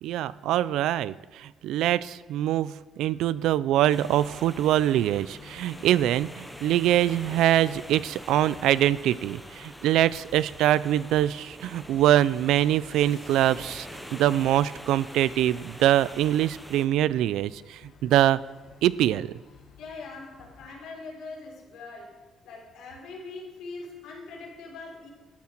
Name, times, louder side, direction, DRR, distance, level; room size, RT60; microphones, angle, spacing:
voice 1, 0.0-18.4 18.8-19.3, right 12 dB, 80° right, 19 dB, 0.4 m, -24 dB
sound 1, 3.9-16.9, equal, ahead, 0.9 m, -44 dB
sound 2, 4.0-20.8, left 5 dB, 50° left, 1.7 m, -53 dB
voice 2, 19.8-22.2 22.4-25.1, left 3 dB, 75° left, -1 dB, 3.9 m, -42 dB
13.0 x 11.5 x 4.5 m, 1.2 s
cardioid pair, 170°, 0 cm